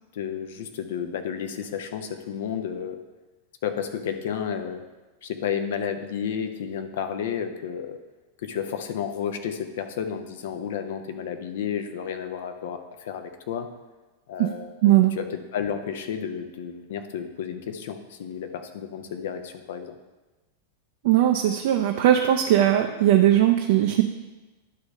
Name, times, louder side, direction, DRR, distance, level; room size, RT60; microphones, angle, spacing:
voice 1, 0.1-3.0 3.6-4.8 5.2-8.0 8.4-13.7 14.3-20.0, left 8 dB, 55° left, 7 dB, 0.6 m, -32 dB
voice 2, 14.8-15.1 21.0-24.0, right 12 dB, 50° right, 3 dB, 0.5 m, -19 dB
10.5 x 3.5 x 5.3 m, 1.2 s
figure-of-eight pair, 90°, 0 cm